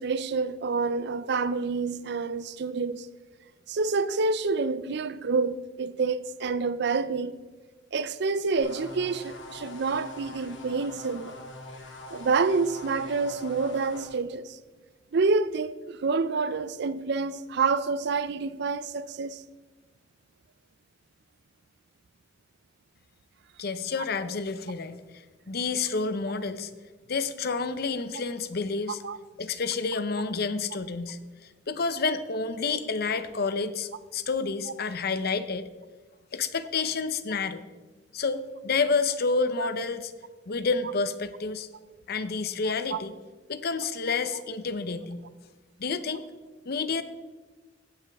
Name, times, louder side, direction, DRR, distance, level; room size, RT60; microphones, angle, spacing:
voice 1, 0.0-3.1 3.7-7.3 7.9-11.4 12.1-14.6 15.1-19.4 29.0-29.2 42.7-43.0, right 4 dB, 65° right, 0.5 m, -28 dB
sound 1, 8.6-14.1, left 2 dB, 85° left, 2.0 m, -43 dB
voice 2, 23.6-25.0 25.5-26.7 27.1-29.0 29.4-31.2 31.7-35.7 36.3-37.6 38.1-40.1 40.5-41.7 42.1-43.1 43.5-45.2 45.8-46.3 46.6-47.0, left 4 dB, 55° left, 0.7 m, -29 dB
16.0 x 9.2 x 3.5 m
head